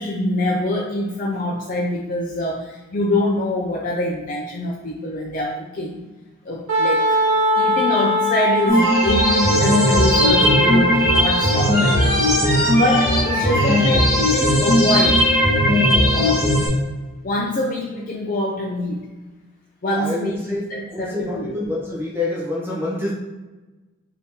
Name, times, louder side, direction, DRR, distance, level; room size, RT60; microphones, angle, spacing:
voice 1, 0.0-6.0 6.5-7.2 7.5-12.0 12.4-15.2 16.1-16.5 17.2-19.1 19.8-20.4 20.7-21.6, left 1 dB, 40° left, -2 dB, 0.4 m, -24 dB
Wind instrument woodwind instrument, 6.7-12.3, equal, 70° right, 1.3 m, -22 dB
sound 1, 8.7-16.7, left 1 dB, 20° left, 1.4 m, -17 dB
voice 2, 19.9-20.6 20.9-23.1, left 2 dB, 10° right, -4 dB, 0.7 m, -26 dB
4.2 x 2.8 x 3.6 m, 1.2 s
head